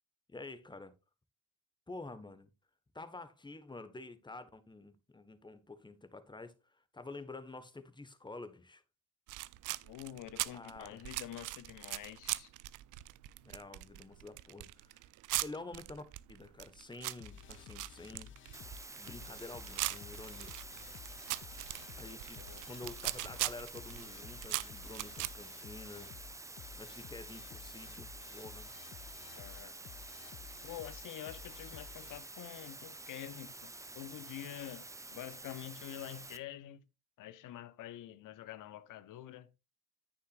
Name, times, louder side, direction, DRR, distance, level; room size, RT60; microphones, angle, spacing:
voice 1, 0.3-0.9 1.9-2.5 2.9-8.8 10.5-11.1 13.4-15.1 15.4-18.3 19.0-20.5 22.0-26.1 26.8-28.7, left 3 dB, 10° left, 1.5 m, -49 dB
sound 1, 9.3-25.3, right 18 dB, 50° right, 0.6 m, -41 dB
voice 2, 9.8-12.5 22.3-22.6 29.3-29.8 30.6-36.8 37.2-39.5, left 12 dB, 50° left, 1.1 m, -47 dB
sound 2, 17.2-32.2, left 10 dB, 30° left, 0.5 m, -53 dB
sound 3, 18.5-36.4, right 2 dB, 10° right, 0.8 m, -49 dB
9.9 x 9.8 x 2.6 m
figure-of-eight pair, 60°, 40 cm